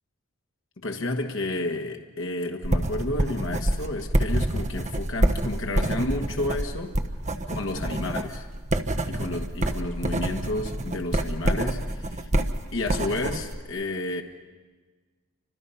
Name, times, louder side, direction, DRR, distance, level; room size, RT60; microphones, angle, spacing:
voice 1, 0.8-6.9 7.5-8.5 9.1-12.3 12.7-14.2, left 2 dB, 75° left, 3 dB, 1.5 m, -31 dB
sound 1, 2.6-13.6, right 1 dB, 35° right, 1.1 m, -27 dB
29.0 x 26.0 x 5.6 m, 1.4 s
head